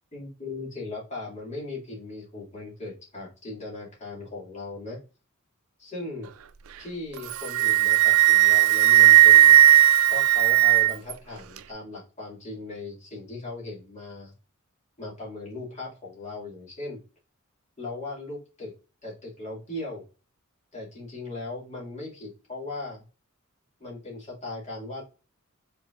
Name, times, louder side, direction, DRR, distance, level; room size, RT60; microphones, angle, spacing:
voice 1, 0.1-5.0 5.8-6.3 6.8-9.6 10.1-14.3 15.0-17.0 17.8-18.7 19.0-20.0 20.7-23.0 23.8-25.0, left 2 dB, 35° left, -5 dB, 2.4 m, -38 dB
Wind instrument woodwind instrument, 7.2-11.1, right 14 dB, 70° right, 0.4 m, -16 dB
5.1 x 4.1 x 2.5 m, 0.33 s
head